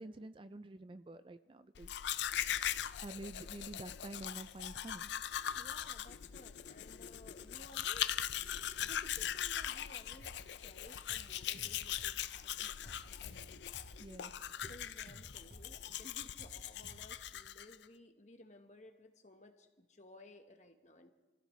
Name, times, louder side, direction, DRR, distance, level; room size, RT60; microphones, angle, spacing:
voice 1, 0.0-1.9 3.0-5.1 8.7-8.9 14.0-14.3, right 2 dB, 25° right, 11 dB, 0.4 m, -48 dB
Domestic sounds home sounds, 1.8-17.8, left 10 dB, 70° left, 0.4 m, -40 dB
voice 2, 5.6-8.1 8.8-10.3 10.5-13.1 14.7-21.1, left 1 dB, 40° left, 6 dB, 1.2 m, -58 dB
sound 1, 10.2-10.5 10.9-12.2 12.6-14.0 14.4-15.8 16.2-17.3, right 1 dB, 70° right, 3.7 m, -55 dB
27.0 x 15.5 x 3.2 m, 1.2 s
head